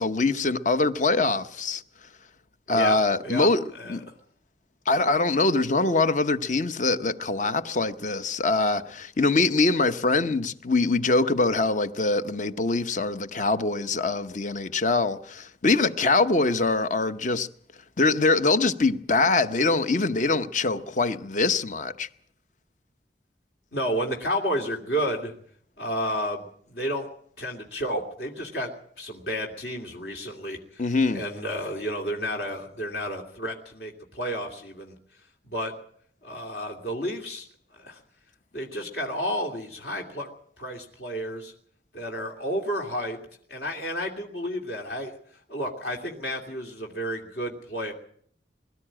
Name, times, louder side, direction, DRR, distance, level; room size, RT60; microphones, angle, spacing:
voice 1, 0.0-1.8 2.7-3.6 3.9-4.0 4.9-17.5 18.0-22.1 30.8-31.2, left 3 dB, 45° left, 0.9 m, -23 dB
voice 2, 2.7-3.5 3.8-4.0 23.7-25.3 25.8-27.1 27.4-28.7 29.0-30.8 31.1-34.9 35.5-35.7 36.2-37.5 37.7-38.0 38.5-40.3 40.6-41.5 41.9-43.2 43.5-47.9, equal, 65° left, 2.7 m, -31 dB
22.0 x 13.0 x 8.8 m
head